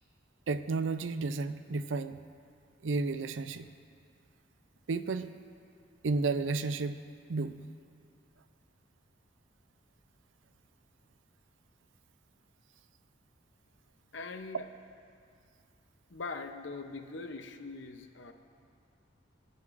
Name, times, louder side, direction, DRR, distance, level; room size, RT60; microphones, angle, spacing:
voice 1, 0.5-2.2 2.8-3.7 4.9-5.3 6.0-7.0 7.3-7.6, right 3 dB, 80° right, 12 dB, 0.5 m, -32 dB
voice 2, 14.1-14.7 16.1-18.3, left 3 dB, 70° left, 7 dB, 0.8 m, -42 dB
24.5 x 9.5 x 2.6 m, 2.3 s
head